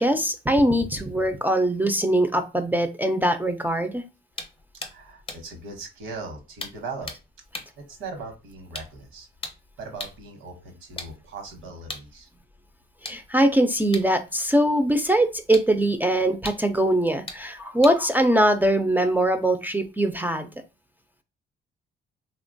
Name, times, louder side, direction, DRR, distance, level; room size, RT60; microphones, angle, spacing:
voice 1, 0.0-4.0 13.0-20.5, right 1 dB, 10° right, 7 dB, 0.3 m, -22 dB
sound 1, 4.3-10.3 10.8-19.3, left 2 dB, 25° left, 0.6 m, -42 dB
voice 2, 4.9-7.1 7.8-9.3 9.8-12.3, right 3 dB, 85° right, 4 dB, 0.9 m, -39 dB
2.9 x 2.2 x 2.6 m, 0.28 s
cardioid pair, 90°, 20 cm